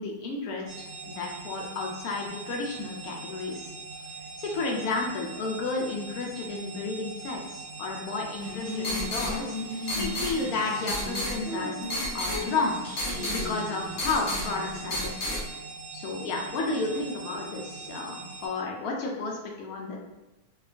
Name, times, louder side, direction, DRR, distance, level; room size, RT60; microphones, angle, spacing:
voice 1, 0.0-3.7 4.4-9.6 9.9-11.8 12.1-15.4 15.9-20.0, left 3 dB, 80° left, 0 dB, 1.1 m, -32 dB
sound 1, 0.7-18.5, right 4 dB, 90° right, 1.2 m, -42 dB
sound 2, 8.4-15.4, left 1 dB, 55° left, 0.9 m, -32 dB
2.8 x 2.3 x 2.4 m, 1.0 s
omnidirectional pair, 1.6 m